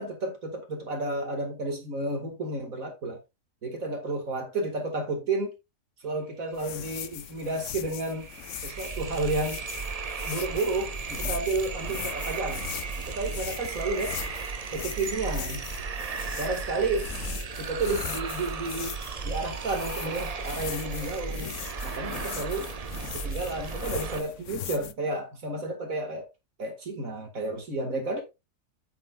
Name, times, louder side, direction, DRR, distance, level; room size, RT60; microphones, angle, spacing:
voice 1, 0.0-3.2 3.6-5.5 6.0-8.3 8.6-9.6 10.3-12.6 13.0-14.2 14.7-15.7 16.4-17.1 17.6-19.0 19.2-21.6 21.8-22.7 23.1-26.3 26.6-28.2, right 2 dB, 55° right, 2.6 m, -31 dB
sound 1, 6.5-24.9, left 11 dB, 65° left, 0.8 m, -40 dB
sound 2, 7.2-7.3 7.5-24.2, right 5 dB, 80° right, 0.3 m, -35 dB
8.7 x 7.3 x 2.5 m
omnidirectional pair, 1.7 m